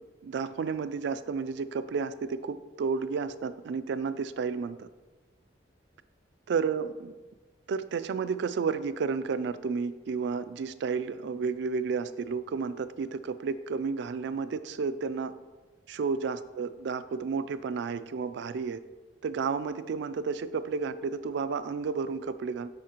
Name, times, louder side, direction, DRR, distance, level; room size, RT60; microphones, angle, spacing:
voice 1, 0.0-4.9 6.5-7.1 7.7-15.3 15.9-18.8 19.2-22.7, right 5 dB, 65° right, 13 dB, 0.3 m, -32 dB
9.7 x 3.6 x 3.0 m, 1.2 s
head